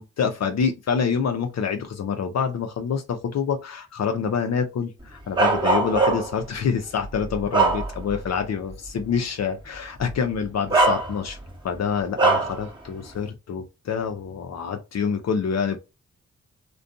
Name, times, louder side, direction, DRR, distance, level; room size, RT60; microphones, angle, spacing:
voice 1, 0.0-11.4 11.6-15.8, left 6 dB, 55° left, 0.6 m, -26 dB
Bark, 5.4-6.4 7.0-8.3 8.7-8.9 10.0-10.1 10.7-11.5 12.2-12.6, right 3 dB, 15° right, 0.9 m, -21 dB
2.5 x 2.3 x 2.5 m
supercardioid pair, 50°, 31 cm